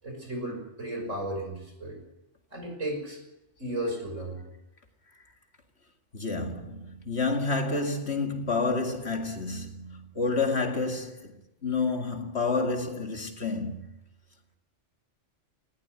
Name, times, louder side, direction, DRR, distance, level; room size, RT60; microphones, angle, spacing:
voice 1, 0.0-2.0 2.5-3.2 3.6-4.4, right 1 dB, 75° right, 6.4 m, -34 dB
voice 2, 6.1-11.3 11.6-14.0, left 3 dB, 55° left, 2.4 m, -29 dB
19.5 x 16.0 x 9.6 m
omnidirectional pair, 1.3 m